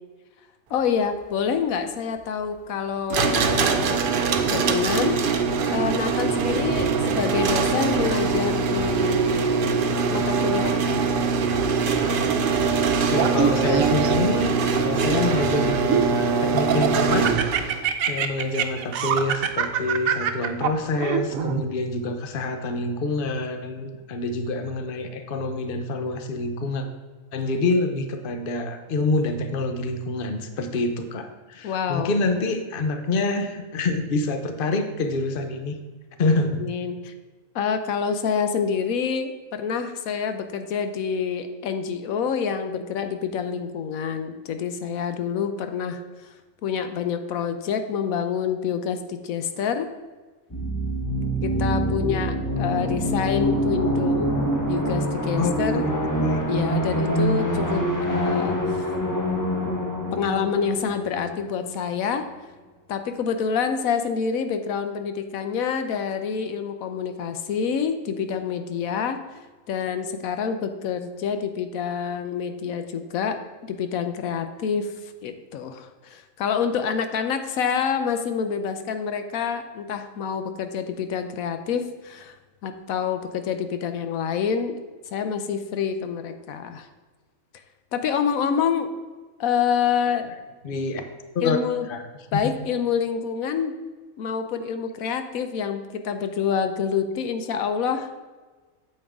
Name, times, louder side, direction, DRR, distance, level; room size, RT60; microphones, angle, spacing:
voice 1, 0.7-4.0 4.5-5.2 5.7-9.4 10.1-11.1 31.6-32.1 36.6-37.1 37.5-46.0 46.3-46.4 46.6-49.9 51.4-54.4 54.7-55.8 56.5-58.9 60.1-62.3 62.9-69.2 69.7-82.3 82.6-84.7 85.1-86.9 87.9-88.9 89.4-90.3 91.4-91.9 92.3-93.7 94.2-98.1, left 7 dB, 85° left, 8 dB, 1.1 m, -27 dB
sound 1, 3.1-17.8, right 5 dB, 55° right, 0.7 m, -23 dB
voice 2, 13.1-26.9 27.3-35.8 36.2-36.6 55.4-55.8 56.2-56.4 90.6-91.1 91.3-91.6 91.9-92.0 92.3-92.4, left 3 dB, 45° left, 6 dB, 0.9 m, -26 dB
Laughter, 13.1-14.4 15.1-16.1 16.6-21.6, right 8 dB, 80° right, 1.1 m, -25 dB
sound 2, 50.5-62.0, equal, 15° left, 0.9 m, -25 dB
8.8 x 7.8 x 3.6 m, 1.3 s
omnidirectional pair, 1.4 m